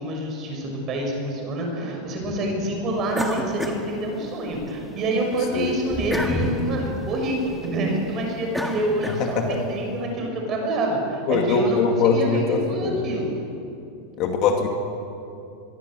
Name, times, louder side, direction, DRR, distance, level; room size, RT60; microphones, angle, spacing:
voice 1, 0.0-13.3, right 1 dB, 25° right, 1 dB, 6.5 m, -27 dB
sound 1, 3.1-4.7 5.1-9.7, equal, ahead, 1.7 m, -30 dB
voice 2, 11.3-13.0 14.2-14.7, left 5 dB, 35° left, 2 dB, 2.4 m, -22 dB
26.0 x 22.0 x 7.9 m, 2.7 s
supercardioid pair, 170°, 0 cm